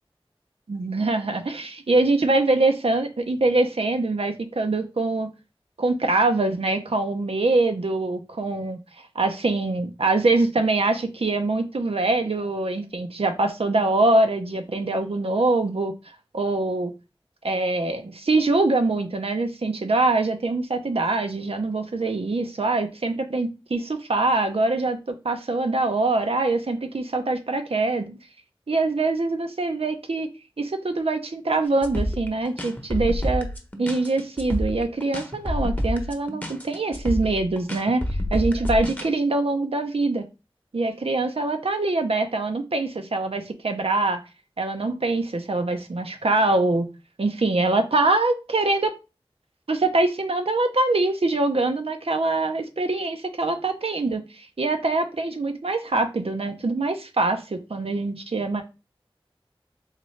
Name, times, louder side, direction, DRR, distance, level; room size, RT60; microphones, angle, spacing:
voice 1, 0.7-5.3 5.8-8.8 9.1-15.9 16.3-16.9 17.4-25.0 25.2-28.2 28.7-30.3 30.6-33.5 33.8-38.0 38.3-40.2 40.7-44.2 44.6-46.9 47.2-48.9 49.7-58.6, right 2 dB, 85° right, 6 dB, 0.7 m, -24 dB
sound 1, 31.8-39.1, equal, 15° left, 0.8 m, -28 dB
4.1 x 3.1 x 3.2 m, 0.28 s
wide cardioid pair, 45°, 10 cm